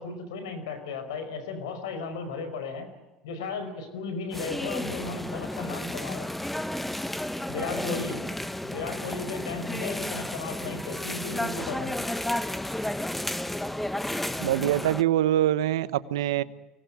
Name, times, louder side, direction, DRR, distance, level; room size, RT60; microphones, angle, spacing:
voice 1, 0.0-2.9 3.2-6.3 7.5-8.2 8.6-12.0 15.8-16.0 16.4-16.5, left 4 dB, 90° left, 10 dB, 5.2 m, -35 dB
sound 1, 4.3-15.0, left 1 dB, 5° left, 1.1 m, -32 dB
voice 2, 14.4-16.4, right 12 dB, 90° right, 16 dB, 1.0 m, -24 dB
24.5 x 19.5 x 9.1 m, 1.1 s
supercardioid pair, 90°, 2 cm